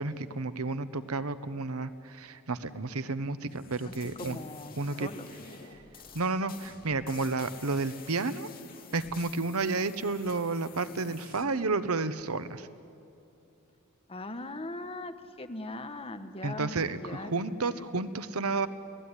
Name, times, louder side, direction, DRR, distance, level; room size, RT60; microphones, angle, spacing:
voice 1, 0.0-4.4 4.8-5.1 6.1-8.5 8.9-12.7 16.4-18.7, right 3 dB, 80° right, 13 dB, 1.0 m, -31 dB
sound 1, 3.5-11.4, left 6 dB, 45° left, 2.3 m, -50 dB
voice 2, 4.2-5.3 14.1-18.0, left 2 dB, 25° left, 8 dB, 1.2 m, -40 dB
30.0 x 17.5 x 9.9 m, 2.7 s
head